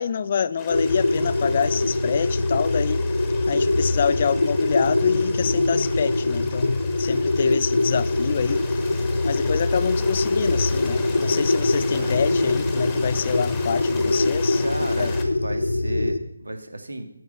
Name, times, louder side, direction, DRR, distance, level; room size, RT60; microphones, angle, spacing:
voice 1, 0.0-3.0 3.5-8.6 9.2-14.6 15.0-15.1, left 7 dB, 35° left, 0.3 m, -26 dB
Stream, 0.6-15.3, left 3 dB, 10° left, 1.1 m, -38 dB
sound 1, 0.7-16.2, left 2 dB, 80° left, 0.9 m, -23 dB
voice 2, 11.9-12.4 14.6-17.1, right 1 dB, 80° right, 1.7 m, -34 dB
9.7 x 7.1 x 5.2 m
figure-of-eight pair, 160°, 0 cm